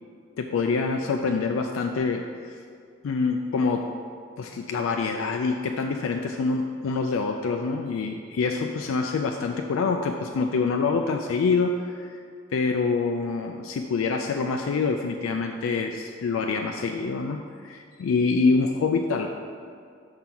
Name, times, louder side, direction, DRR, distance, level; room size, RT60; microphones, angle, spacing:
voice 1, 0.4-2.5 3.0-3.9 4.4-12.2 12.5-19.3, left 4 dB, 90° left, 4 dB, 0.3 m, -26 dB
5.6 x 3.8 x 5.9 m, 2.2 s
head